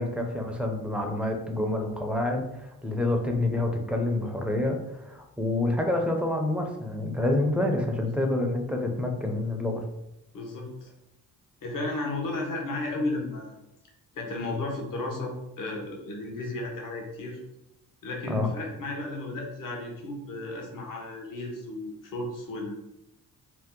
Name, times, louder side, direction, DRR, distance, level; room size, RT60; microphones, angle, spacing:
voice 1, 0.0-9.8 18.3-18.5, left 2 dB, 5° right, 2 dB, 0.5 m, -28 dB
voice 2, 10.3-10.9 11.6-13.6 14.1-17.4 18.0-22.7, left 2 dB, 55° left, 0 dB, 0.9 m, -34 dB
2.8 x 2.1 x 3.5 m, 0.88 s
cardioid pair, 75°, 38 cm